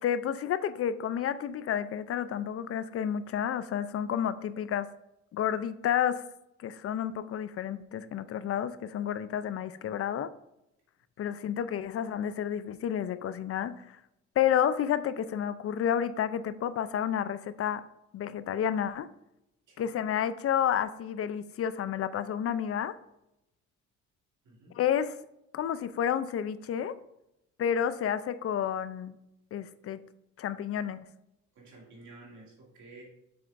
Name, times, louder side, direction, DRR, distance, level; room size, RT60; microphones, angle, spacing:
voice 1, 0.0-4.9 5.3-6.2 6.6-10.3 11.2-14.0 14.4-17.8 18.1-19.1 19.8-23.0 24.7-25.2 25.5-26.9 27.6-29.1 29.5-30.0 30.4-31.1, left 9 dB, 50° left, 14 dB, 0.5 m, -30 dB
voice 2, 24.4-24.8 31.6-33.0, right 2 dB, 80° right, -3 dB, 2.4 m, -52 dB
7.0 x 6.7 x 2.5 m, 0.85 s
cardioid pair, 90°, 30 cm